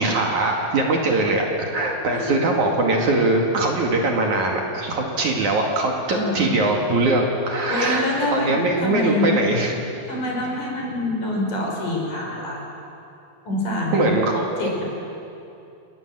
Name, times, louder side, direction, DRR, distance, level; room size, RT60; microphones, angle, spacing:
voice 1, 0.0-9.7 13.9-14.7, right 2 dB, 55° right, 0 dB, 3.3 m, -21 dB
voice 2, 2.1-2.5 6.1-6.5 7.7-9.4 10.1-12.6 13.4-14.1 14.6-14.8, left 2 dB, 55° left, -1 dB, 6.3 m, -26 dB
29.5 x 20.0 x 7.7 m, 2.7 s
omnidirectional pair, 4.5 m